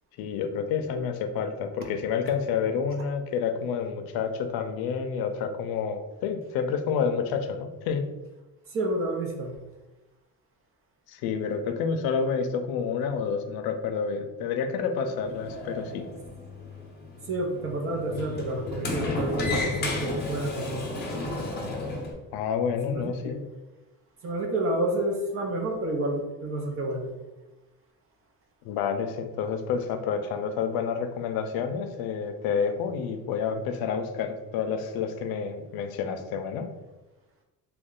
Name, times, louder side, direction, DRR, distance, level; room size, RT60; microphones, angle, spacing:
voice 1, 0.2-8.0 11.1-16.1 22.3-23.4 28.6-36.7, left 6 dB, 80° left, 7 dB, 0.5 m, -29 dB
voice 2, 8.7-9.6 17.3-20.9 22.8-23.4 24.2-27.1, right 1 dB, 40° right, 0 dB, 0.6 m, -29 dB
Sliding door, 15.1-22.1, left 2 dB, 30° left, 0.6 m, -33 dB
3.1 x 2.3 x 3.7 m, 1.1 s
cardioid pair, 150°, 35 cm